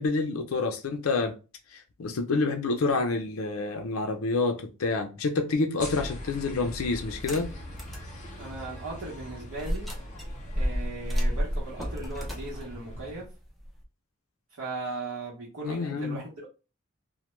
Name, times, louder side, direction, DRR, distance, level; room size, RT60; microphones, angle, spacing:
voice 1, 0.0-1.3 1.7-7.5 15.6-16.2, left 3 dB, 75° left, 0.5 m, -28 dB
sound 1, 5.8-13.2, left 1 dB, 35° left, 0.7 m, -42 dB
sound 2, 7.1-8.1 8.5-8.6 9.6-13.8, equal, ahead, 0.5 m, -31 dB
voice 2, 8.4-10.0 10.5-13.3 14.5-16.5, right 3 dB, 85° right, 0.8 m, -38 dB
2.1 x 2.1 x 3.0 m
head